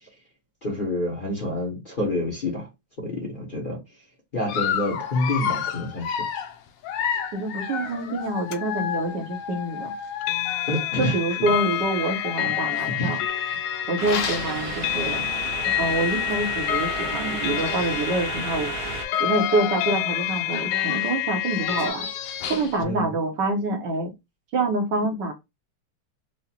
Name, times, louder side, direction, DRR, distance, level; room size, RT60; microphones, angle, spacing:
voice 1, 0.6-2.7 3.0-3.8 4.3-6.2 10.7-11.2 12.4-12.5 13.0-13.6 22.8-23.1, left 1 dB, 35° left, 1.0 m, -28 dB
Dog, 4.5-11.1 11.8-15.4 15.9-16.0 16.3-16.4 17.3-17.4 17.5-18.1 18.7-22.8, left 8 dB, 75° left, 1.2 m, -32 dB
voice 2, 7.3-9.9 11.0-13.2 13.9-15.3 15.8-18.7 19.2-22.1 22.5-24.1 24.5-25.3, right 2 dB, 70° right, 1.3 m, -26 dB
sound 1, 8.5-8.6 10.2-21.9, left 13 dB, 90° left, 1.4 m, -28 dB
sound 2, 14.0-19.1, right 6 dB, 85° right, 1.6 m, -33 dB
4.9 x 2.1 x 2.7 m
omnidirectional pair, 2.2 m